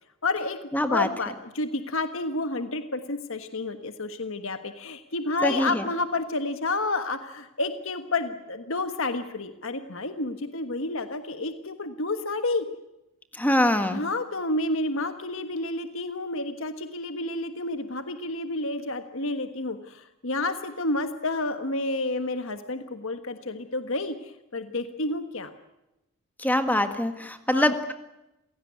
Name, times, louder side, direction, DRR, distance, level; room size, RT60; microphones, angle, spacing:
voice 1, 0.2-0.6 0.9-12.7 13.9-25.5 27.5-27.7, left 2 dB, 65° left, 9 dB, 1.4 m, -30 dB
voice 2, 0.7-1.1 5.4-5.8 13.4-14.0 26.4-27.9, left 1 dB, 10° left, 8 dB, 1.6 m, -24 dB
28.0 x 17.0 x 9.6 m, 0.95 s
head